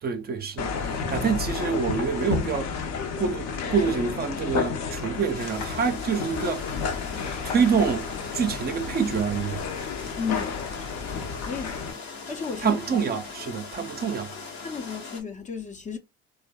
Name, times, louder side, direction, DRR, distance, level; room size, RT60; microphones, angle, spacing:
voice 1, 0.0-2.7 3.2-6.6 7.4-9.6 12.6-14.3, right 6 dB, 35° right, 0.5 m, -26 dB
sound 1, 0.6-11.9, left 5 dB, 60° left, 0.7 m, -31 dB
sound 2, 5.3-15.2, left 4 dB, 85° left, 1.0 m, -40 dB
voice 2, 10.2-10.6 11.5-12.0 12.3-12.8 14.6-16.0, left 6 dB, 25° left, 0.5 m, -33 dB
2.5 x 2.2 x 2.2 m
supercardioid pair, 75°, 29 cm